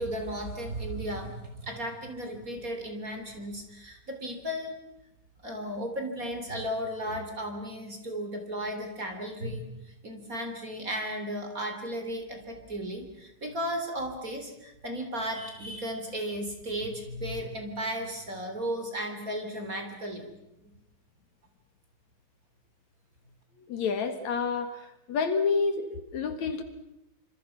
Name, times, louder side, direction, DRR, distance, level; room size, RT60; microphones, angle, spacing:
voice 1, 0.0-4.7 5.4-9.7 10.0-20.3 20.6-20.7, equal, 25° right, 5 dB, 3.9 m, -35 dB
voice 2, 23.7-24.7 25.1-26.6, left 5 dB, 65° left, 8 dB, 3.0 m, -28 dB
28.0 x 26.5 x 6.0 m, 0.85 s
omnidirectional pair, 3.5 m